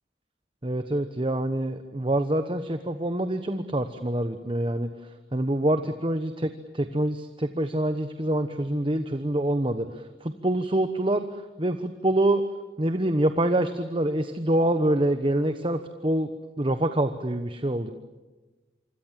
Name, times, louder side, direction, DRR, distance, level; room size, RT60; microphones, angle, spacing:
voice 1, 0.6-4.9 5.3-9.9 10.2-11.2 11.6-12.4 12.8-16.3 16.6-17.9, right 1 dB, 30° right, 9 dB, 1.1 m, -26 dB
27.0 x 25.5 x 7.6 m, 1.2 s
head